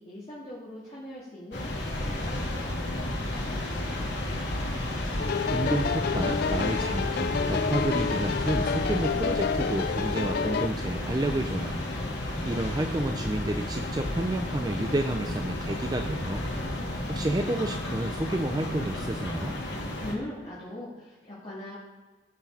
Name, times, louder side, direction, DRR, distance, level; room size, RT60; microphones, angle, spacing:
voice 1, 0.0-4.4 12.1-12.6 20.0-21.8, left 1 dB, 35° left, -10 dB, 3.1 m, -41 dB
sound 1, 1.5-20.1, left 1 dB, 70° left, 2.4 m, -32 dB
sound 2, 5.2-10.7, left 6 dB, 55° left, 0.3 m, -29 dB
voice 2, 5.5-11.8 12.5-16.4 17.1-19.6, right 1 dB, 20° right, 4 dB, 0.6 m, -30 dB
16.5 x 6.1 x 4.3 m, 1.2 s
head